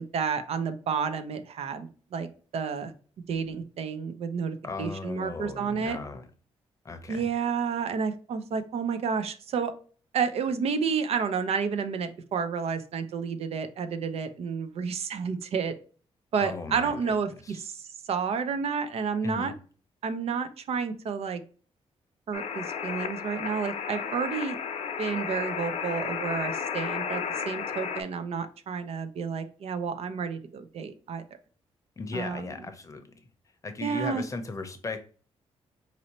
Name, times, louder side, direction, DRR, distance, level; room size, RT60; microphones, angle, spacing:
voice 1, 0.0-2.9 3.3-6.0 7.1-9.7 10.1-15.7 16.3-19.5 20.0-21.4 22.3-24.6 25.0-31.2 32.1-32.7 33.8-34.2, right 6 dB, 65° right, 0.5 m, -30 dB
voice 2, 4.6-6.3 6.8-7.3 16.4-16.9 17.4-17.6 19.2-19.5 32.0-33.0 33.6-35.0, left 3 dB, 30° left, 0.7 m, -36 dB
sound 1, 22.3-28.0, left 7 dB, 80° left, 0.6 m, -33 dB
4.1 x 2.7 x 2.9 m
cardioid pair, 110°, 11 cm